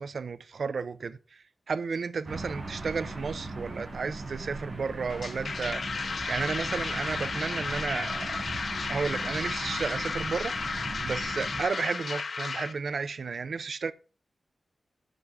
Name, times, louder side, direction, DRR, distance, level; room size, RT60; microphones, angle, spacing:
voice 1, 0.0-8.4 8.9-13.9, right 5 dB, 60° right, 0.5 m, -33 dB
sound 1, 2.2-11.6, right 2 dB, 35° right, 6.1 m, -39 dB
sound 2, 5.1-12.7, left 4 dB, 55° left, 0.9 m, -33 dB
10.0 x 8.0 x 3.5 m
wide cardioid pair, 165°, 0 cm